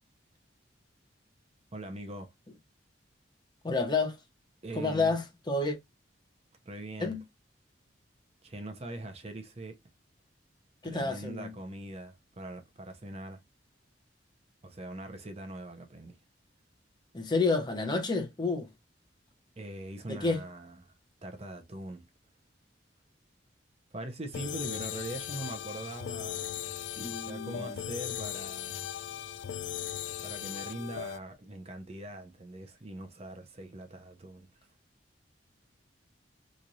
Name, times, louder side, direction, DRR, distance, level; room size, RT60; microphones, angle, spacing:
voice 1, 1.7-2.3 4.6-5.2 6.6-7.2 8.4-9.8 10.8-13.4 14.6-16.2 19.6-22.1 23.9-26.8 27.1-28.9 30.2-34.7, right 1 dB, 35° right, 0.7 m, -42 dB
voice 2, 3.6-4.2 4.8-5.8 7.0-7.2 10.8-11.5 17.1-18.7 20.1-20.4 27.0-27.6, left 3 dB, 25° left, 0.7 m, -29 dB
sound 1, 24.3-31.2, left 11 dB, 70° left, 0.3 m, -38 dB
3.1 x 2.4 x 3.9 m
head